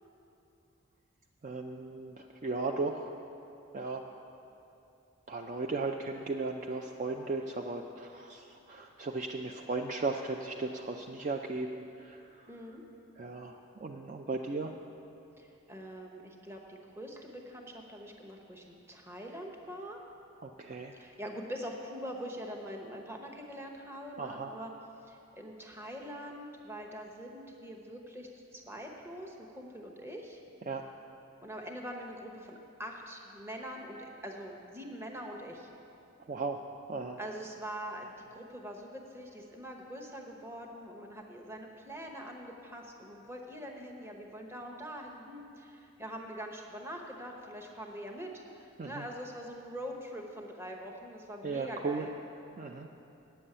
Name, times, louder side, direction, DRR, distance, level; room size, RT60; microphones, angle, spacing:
voice 1, 1.4-3.1 3.7-4.0 5.3-11.7 12.0-12.2 13.2-14.7 20.4-20.9 24.2-24.5 30.7-30.8 36.3-37.2 48.8-49.1 51.4-52.1 52.6-52.9, right 3 dB, 35° right, 2 dB, 0.4 m, -36 dB
voice 2, 12.5-12.8 15.4-20.0 20.9-24.7 25.0-30.4 31.4-35.7 37.2-52.1, equal, 10° right, 1 dB, 0.8 m, -44 dB
8.8 x 7.0 x 8.7 m, 2.8 s
head